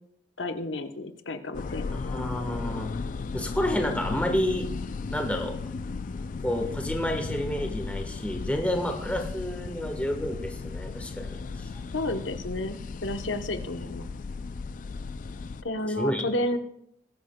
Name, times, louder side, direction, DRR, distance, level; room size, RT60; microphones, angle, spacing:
voice 1, 0.4-2.0 11.9-12.8 13.0-14.1 15.6-16.6, left 1 dB, 80° left, 7 dB, 1.0 m, -31 dB
sound 1, 1.5-15.6, left 4 dB, 45° left, 0.3 m, -35 dB
voice 2, 1.9-2.9 3.3-4.7 5.1-5.5 6.4-11.9 16.0-16.2, equal, 10° left, 3 dB, 1.3 m, -30 dB
21.0 x 8.7 x 2.3 m, 0.72 s
head